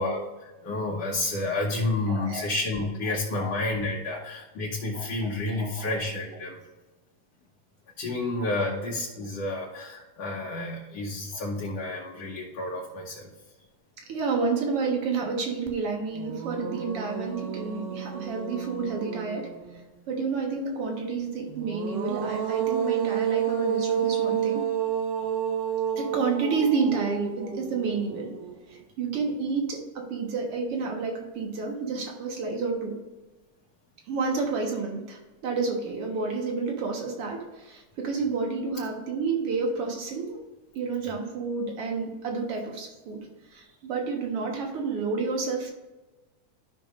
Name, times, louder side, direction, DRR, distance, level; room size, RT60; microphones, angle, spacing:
voice 1, 0.0-6.6 8.0-13.3, left 2 dB, 60° left, -4 dB, 2.0 m, -30 dB
voice 2, 2.1-2.5 3.0-3.5 4.1-4.2 4.9-6.0 8.5-8.7 11.3-11.4 14.0-24.7 26.0-28.3 28.7-33.0 34.1-40.4 40.7-45.7, right 4 dB, 55° right, 1 dB, 1.9 m, -30 dB
sound 1, 15.7-15.8 16.2-19.8 21.5-28.7, right 8 dB, 85° right, 2.6 m, -30 dB
14.0 x 5.7 x 2.5 m, 1.2 s
omnidirectional pair, 3.7 m